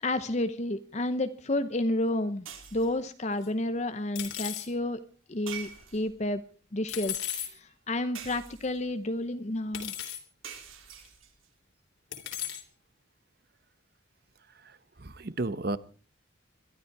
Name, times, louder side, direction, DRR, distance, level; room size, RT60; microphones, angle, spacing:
voice 1, 0.0-2.5 2.7-5.0 5.3-6.4 6.7-9.9, left 1 dB, 35° left, 0.7 m, -30 dB
sound 1, 2.5-3.1 5.5-6.3 8.1-8.9 10.4-11.5, right 7 dB, 90° right, 3.6 m, -45 dB
sound 2, 3.4-3.5 4.2-4.7 6.9-7.5 8.5-8.6 9.7-10.2 11.1-11.2 12.1-12.6, left 11 dB, 75° left, 3.3 m, -35 dB
voice 2, 14.6-15.8, right 2 dB, 50° right, 0.9 m, -33 dB
22.0 x 13.0 x 4.7 m
head